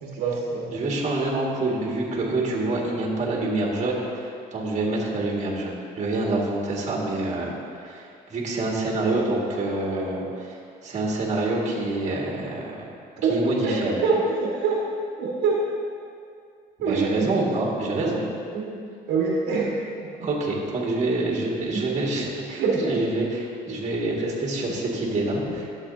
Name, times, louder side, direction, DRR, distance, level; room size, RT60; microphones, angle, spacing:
voice 1, 0.0-0.7 13.2-13.3 13.6-14.8 15.2-15.7 16.8-17.3 18.0-18.1 18.5-19.8 21.7-21.8 22.6-23.0, right 4 dB, 80° right, -4 dB, 1.6 m, -25 dB
voice 2, 0.7-10.6 10.8-12.9 13.3-14.0 16.8-18.2 20.2-22.6 22.9-25.7, right 2 dB, 45° right, -3 dB, 2.0 m, -26 dB
12.0 x 7.7 x 2.8 m, 2.3 s
cardioid pair, 110°, 17 cm